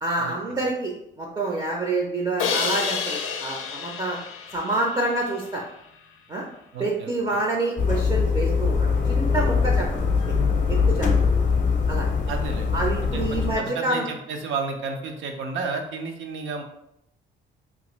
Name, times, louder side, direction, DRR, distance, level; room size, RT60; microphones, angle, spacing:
voice 1, 0.0-4.2 4.5-5.6 6.3-6.4 6.8-10.0 10.7-11.1 11.9-12.1 12.7-14.1, right 2 dB, 25° right, -1 dB, 0.5 m, -27 dB
Crash cymbal, 2.4-5.5, left 6 dB, 85° left, 0.4 m, -29 dB
voice 2, 6.7-7.4 12.3-16.6, right 4 dB, 75° right, 4 dB, 0.6 m, -32 dB
sound 1, 7.8-13.6, left 5 dB, 40° left, 0.6 m, -22 dB
2.5 x 2.5 x 3.0 m, 0.78 s
cardioid pair, 90°, 20 cm